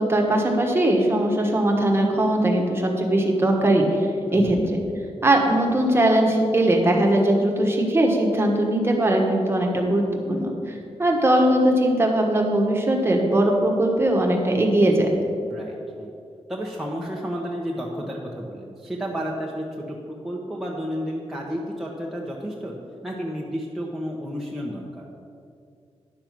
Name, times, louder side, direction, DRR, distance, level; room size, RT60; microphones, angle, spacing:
voice 1, 0.0-4.8 5.2-10.7 11.0-15.1, right 1 dB, 20° right, 0 dB, 1.4 m, -20 dB
voice 2, 15.5-16.1 16.5-22.7 23.0-25.1, equal, ahead, -3 dB, 0.9 m, -31 dB
10.5 x 6.7 x 6.0 m, 2.4 s
wide cardioid pair, 145°, 11 cm